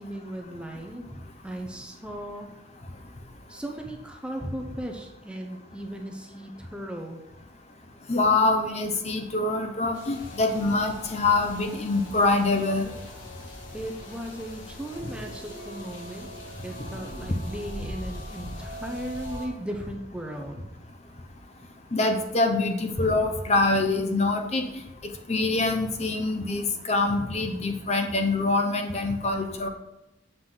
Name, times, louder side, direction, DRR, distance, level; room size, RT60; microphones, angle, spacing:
voice 1, 0.0-2.5 3.5-7.2 13.7-16.3 16.6-20.6, equal, 5° right, 2 dB, 0.6 m, -37 dB
voice 2, 8.1-12.9 21.9-24.6 25.3-29.7, left 2 dB, 35° left, 5 dB, 0.8 m, -25 dB
sound 1, 9.9-19.5, equal, 80° left, 1.5 m, -41 dB
7.9 x 5.9 x 3.8 m, 0.95 s
head